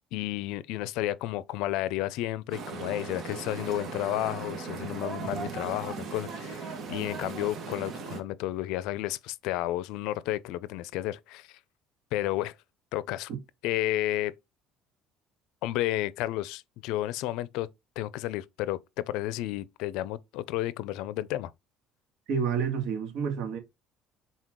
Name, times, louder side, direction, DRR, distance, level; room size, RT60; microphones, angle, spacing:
voice 1, 0.1-11.6 12.1-12.5 12.9-13.3 13.6-14.3 15.6-17.7 18.0-21.5, left 15 dB, 80° left, 0.5 m, -32 dB
sound 1, 2.5-8.2, right 5 dB, 45° right, 1.7 m, -38 dB
voice 2, 22.3-23.6, right 6 dB, 65° right, 1.9 m, -29 dB
6.3 x 4.1 x 3.7 m
cardioid pair, 130°, 0 cm